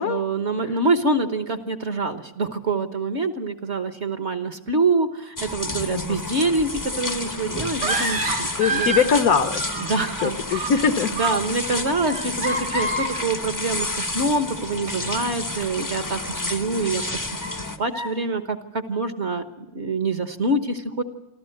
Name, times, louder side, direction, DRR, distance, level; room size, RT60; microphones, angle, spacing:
voice 1, 0.0-8.9 9.9-10.7 11.2-17.0 17.8-19.4 19.7-21.0, right 3 dB, 45° right, 8 dB, 1.3 m, -25 dB
sound 1, 5.4-17.8, left 2 dB, 15° left, 0.7 m, -30 dB
voice 2, 5.9-6.3 8.6-9.8 10.2-11.3 16.4-16.5, left 6 dB, 60° left, 10 dB, 1.2 m, -22 dB
sound 2, 7.7-9.1 9.4-10.1 10.3-10.8 11.1-11.5 12.0-13.2 14.2-14.3 14.9-15.0 15.6-15.7 16.4-16.5 17.4-17.6 17.9-18.1, right 2 dB, 80° right, 3.5 m, -28 dB
27.0 x 13.0 x 7.8 m, 1.0 s
omnidirectional pair, 1.9 m